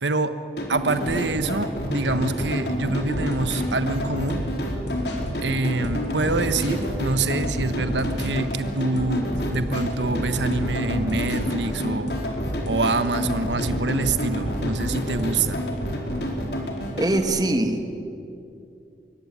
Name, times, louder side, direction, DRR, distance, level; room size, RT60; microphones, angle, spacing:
voice 1, 0.0-0.3 0.7-4.4 5.4-12.1 12.7-15.6, right 3 dB, 90° right, 10 dB, 1.3 m, -26 dB
sound 1, 0.6-17.2, equal, 65° left, 4.4 m, -29 dB
sound 2, 3.1-5.3 5.8-8.3 9.0-9.9 10.1-11.4 12.1-15.3, equal, 85° left, 3.9 m, -33 dB
voice 2, 17.0-17.9, right 1 dB, 20° right, 6 dB, 1.8 m, -22 dB
24.5 x 22.5 x 9.8 m, 2.6 s
head